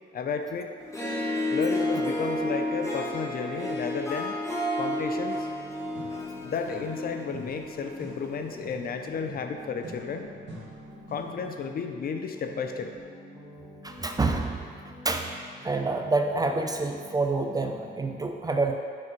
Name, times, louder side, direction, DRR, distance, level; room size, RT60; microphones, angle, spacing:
voice 1, 0.1-0.7 1.5-4.3 4.8-5.5 6.4-10.3 11.1-12.9, left 5 dB, 50° left, 5 dB, 0.5 m, -33 dB
Harp, 0.8-8.2, left 1 dB, 15° left, 1.1 m, -31 dB
sound 1, 5.2-18.3, left 1 dB, 5° right, 1.3 m, -47 dB
sound 2, 5.9-7.0 7.3-11.4, right 2 dB, 65° right, 1.5 m, -48 dB
voice 2, 13.8-15.3 15.6-18.8, right 3 dB, 20° right, 4 dB, 0.4 m, -28 dB
6.3 x 3.4 x 4.4 m, 2.1 s
cardioid pair, 90°, 20 cm